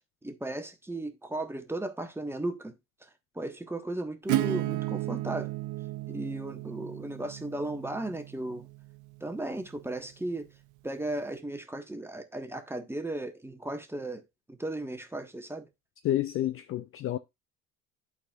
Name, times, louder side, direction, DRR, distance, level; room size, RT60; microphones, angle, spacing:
voice 1, 0.2-2.8 3.3-5.5 6.1-8.7 9.2-10.5 10.8-14.2 14.5-15.7, right 1 dB, 5° right, 1.1 m, -36 dB
Acoustic guitar / Strum, 4.3-9.8, right 16 dB, 50° right, 0.6 m, -34 dB
voice 2, 16.0-17.2, left 13 dB, 35° left, 0.4 m, -29 dB
11.5 x 4.2 x 2.4 m
hypercardioid pair, 70°, 39 cm